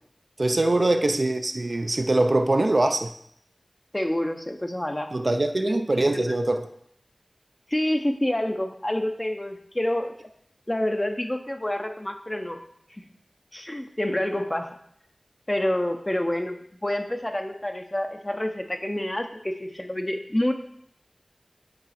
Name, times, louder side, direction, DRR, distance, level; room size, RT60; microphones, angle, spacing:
voice 1, 0.4-3.1 5.1-6.6, right 2 dB, 55° right, 6 dB, 0.5 m, -23 dB
voice 2, 3.9-5.1 5.6-5.8 6.1-6.4 7.7-10.1 10.7-12.6 13.0-13.1 13.5-14.7 15.5-20.5, left 1 dB, 25° left, 6 dB, 0.8 m, -28 dB
8.7 x 3.8 x 4.3 m, 0.69 s
wide cardioid pair, 40°, 0 cm